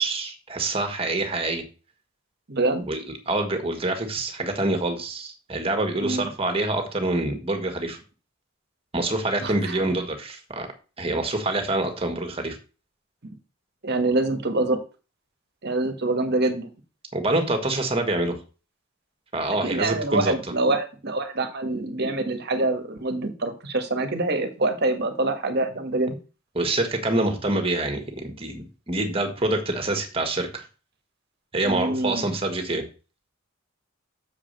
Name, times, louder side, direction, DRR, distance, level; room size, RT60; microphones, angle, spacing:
voice 1, 0.0-1.6 2.9-8.0 8.9-10.7 11.0-12.6 17.1-18.4 19.3-20.3 26.5-30.6 31.5-32.8, right 2 dB, 25° right, 5 dB, 1.6 m, -26 dB
voice 2, 2.5-2.9 6.0-6.3 9.4-9.8 13.2-13.3 13.8-14.8 15.6-16.7 19.6-26.2 31.6-32.3, right 2 dB, 50° right, 7 dB, 1.4 m, -25 dB
7.1 x 4.9 x 6.6 m, 0.34 s
head